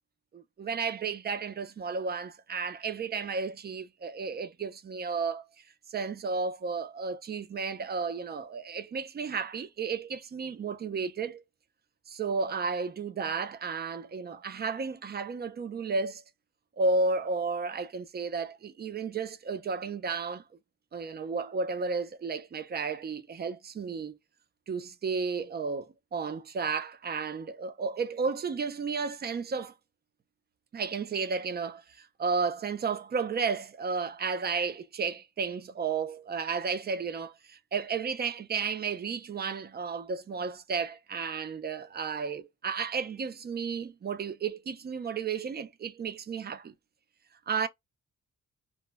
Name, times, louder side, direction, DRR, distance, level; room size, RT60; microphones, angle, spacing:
voice 1, 0.3-5.5 5.9-11.4 12.1-16.2 16.8-20.4 20.9-24.2 24.7-29.7 30.7-46.7 47.5-47.7, right 4 dB, 30° right, 0.4 m, -33 dB
2.1 x 2.0 x 3.3 m
wide cardioid pair, 145°, 33 cm